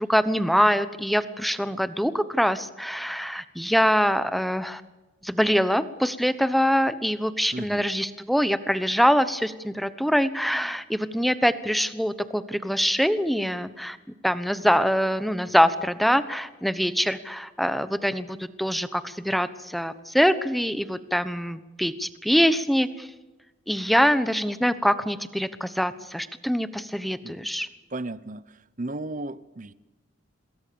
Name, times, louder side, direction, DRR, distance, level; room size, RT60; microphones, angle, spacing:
voice 1, 0.0-4.8 5.2-14.0 14.2-23.1 23.7-27.7, equal, ahead, 13 dB, 1.1 m, -24 dB
voice 2, 7.5-7.8 27.2-27.5 27.9-29.7, right 2 dB, 40° right, 17 dB, 0.9 m, -35 dB
27.0 x 21.5 x 7.0 m, 1.1 s
head